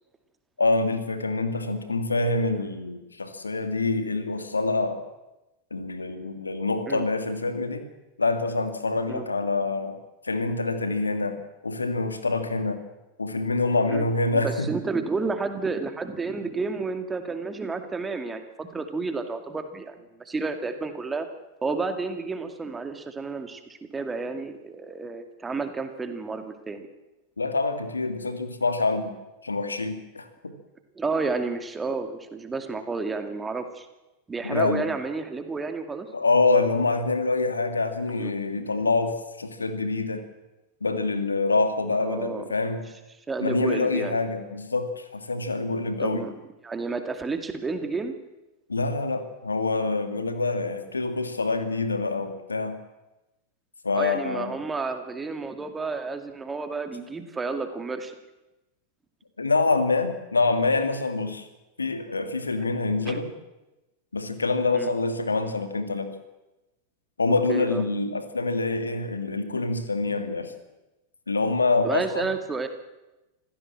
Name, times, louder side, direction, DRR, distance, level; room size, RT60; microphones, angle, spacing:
voice 1, 0.6-5.0 5.7-7.9 8.2-10.0 10.2-11.4 11.6-12.8 13.2-14.7 27.4-29.1 29.4-30.5 34.4-34.9 36.1-40.2 40.8-42.8 43.4-46.2 48.7-52.8 53.8-54.5 59.4-61.5 61.8-63.3 64.1-66.1 67.2-70.5 71.3-72.3, left 3 dB, 80° left, 8 dB, 2.4 m, -26 dB
voice 2, 14.3-21.3 21.6-23.6 23.9-26.9 31.0-33.9 34.3-36.1 38.2-38.3 38.6-38.7 42.0-42.4 43.3-44.2 46.0-46.3 46.6-48.1 53.9-58.2 63.1-63.2 64.7-64.9 67.5-67.8 71.8-72.7, right 4 dB, 15° right, 7 dB, 2.3 m, -31 dB
26.0 x 16.0 x 7.6 m, 1.0 s
figure-of-eight pair, 90°, 0 cm